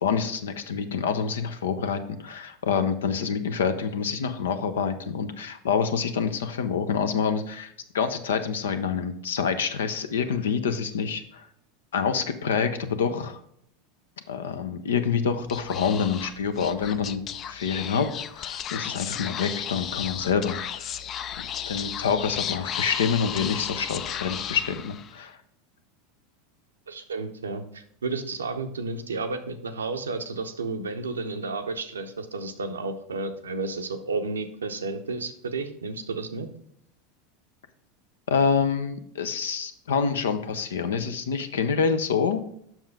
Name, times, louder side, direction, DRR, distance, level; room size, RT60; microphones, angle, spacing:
voice 1, 0.0-11.5 11.9-13.4 14.3-17.2 17.5-21.0 21.7-25.4 38.3-42.4, left 6 dB, 75° left, 10 dB, 0.7 m, -27 dB
Speech / Whispering, 15.4-25.2, left 9 dB, 40° left, 0.4 m, -34 dB
voice 2, 26.9-36.5, right 3 dB, 80° right, 8 dB, 0.7 m, -32 dB
7.2 x 6.0 x 3.4 m, 0.69 s
figure-of-eight pair, 85°, 0 cm